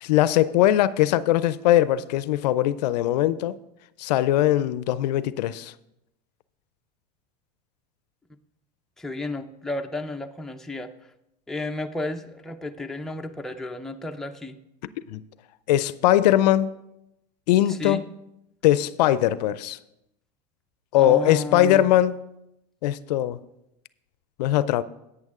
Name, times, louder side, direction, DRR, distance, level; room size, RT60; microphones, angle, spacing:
voice 1, 0.0-3.6 4.0-5.7 15.1-15.2 15.7-16.7 17.5-18.0 18.6-19.8 20.9-22.2 22.8-23.4 24.4-24.8, left 13 dB, 75° left, 0.5 m, -20 dB
voice 2, 9.0-10.9 11.5-14.6 17.7-18.0 20.9-21.9, left 2 dB, ahead, 0.5 m, -32 dB
10.5 x 8.8 x 3.7 m
supercardioid pair, 110°, 21 cm